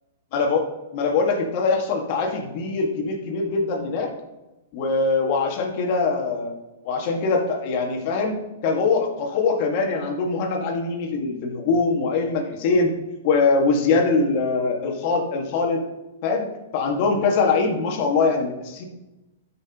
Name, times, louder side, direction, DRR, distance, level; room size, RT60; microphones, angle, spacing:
voice 1, 0.3-4.1 4.7-6.5 6.8-8.4 8.6-12.9 13.2-15.8 16.2-16.5 16.7-18.8, left 4 dB, 45° left, 2 dB, 1.8 m, -22 dB
12.5 x 5.8 x 3.0 m, 1.0 s
hypercardioid pair, 130°, 0 cm